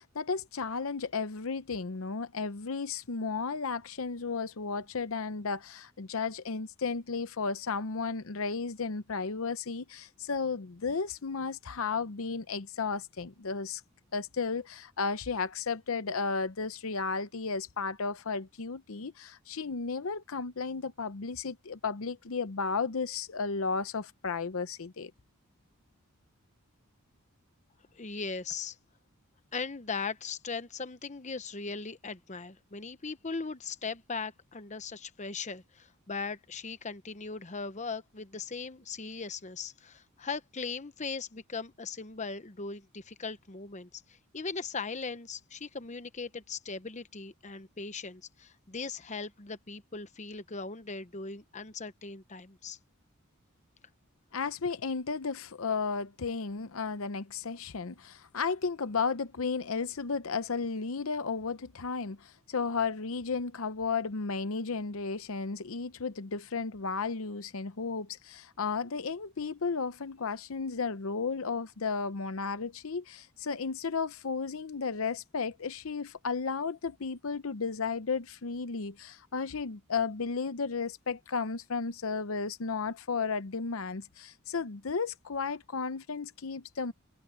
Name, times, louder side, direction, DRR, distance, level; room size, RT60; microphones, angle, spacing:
voice 1, 0.0-13.8 14.1-25.1 54.3-86.9, left 4 dB, 65° left, 0.7 m, -34 dB
voice 2, 27.9-28.8 29.5-52.8, left 4 dB, 30° left, 0.9 m, -39 dB
head